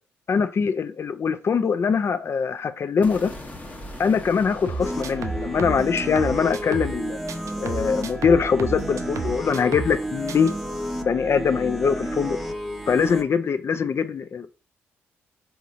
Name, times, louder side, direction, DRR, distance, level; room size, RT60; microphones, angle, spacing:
voice 1, 0.3-3.3 4.0-7.2 7.6-10.5 11.0-12.4 12.9-14.5, left 6 dB, 45° left, 0.4 m, -22 dB
sound 1, 3.0-9.1, left 1 dB, 25° left, 1.0 m, -42 dB
sound 2, 4.7-7.0 7.3-10.0 10.3-10.5, right 4 dB, 55° right, 0.4 m, -32 dB
sound 3, 4.8-13.2, equal, ahead, 0.6 m, -32 dB
3.8 x 2.8 x 2.5 m
hypercardioid pair, 45°, 6 cm